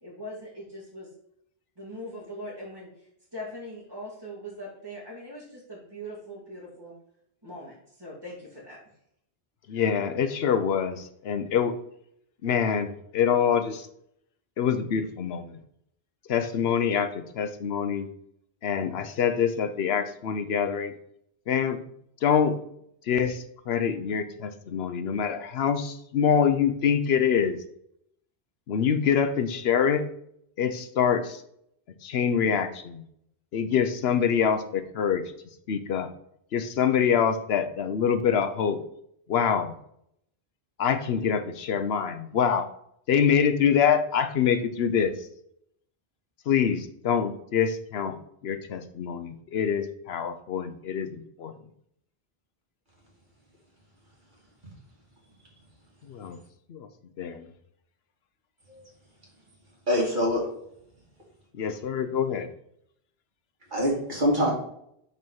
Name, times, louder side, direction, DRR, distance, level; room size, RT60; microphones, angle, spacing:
voice 1, 0.0-1.1 1.8-6.9 7.4-8.8, equal, 25° right, -9 dB, 2.2 m, -41 dB
voice 2, 9.7-11.8 12.4-13.9 14.6-15.6 16.3-18.1 18.6-20.9 21.5-21.8 22.2-22.6 23.1-27.6 28.7-30.0 30.6-31.4 32.0-33.0 33.5-35.2 35.7-36.1 36.5-38.8 39.3-39.7 40.8-42.7 43.1-45.3 46.5-48.2 48.4-51.5 56.0-56.4 56.7-56.9 57.2-57.4 61.5-62.5, left 7 dB, 80° left, 9 dB, 1.0 m, -25 dB
voice 3, 59.9-60.4 63.7-64.5, equal, 50° right, -4 dB, 2.6 m, -24 dB
5.7 x 4.5 x 5.4 m, 0.73 s
omnidirectional pair, 1.0 m